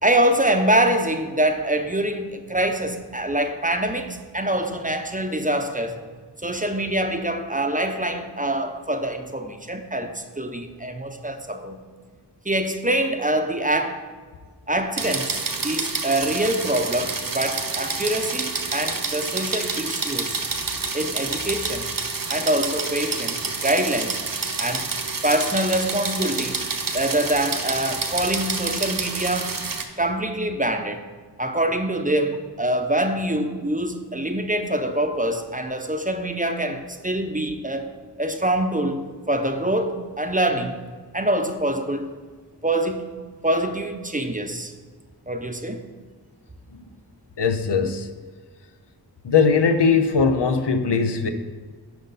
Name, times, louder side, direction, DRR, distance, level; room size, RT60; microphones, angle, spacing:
voice 1, 0.0-6.0 6.4-11.8 12.4-14.0 14.7-20.4 20.9-21.9 22.3-24.2 24.6-24.9 25.2-26.6 26.9-29.6 30.0-31.0 31.4-37.9 38.2-40.8 41.1-42.1 42.6-43.0 43.4-44.7 45.3-45.8, right 1 dB, 20° right, 6 dB, 0.7 m, -25 dB
sound 1, 15.0-29.8, right 4 dB, 55° right, 0.8 m, -28 dB
voice 2, 47.4-48.1 49.2-51.3, left 5 dB, 75° left, 7 dB, 0.7 m, -20 dB
9.3 x 5.4 x 4.1 m, 1.5 s
wide cardioid pair, 40°, 42 cm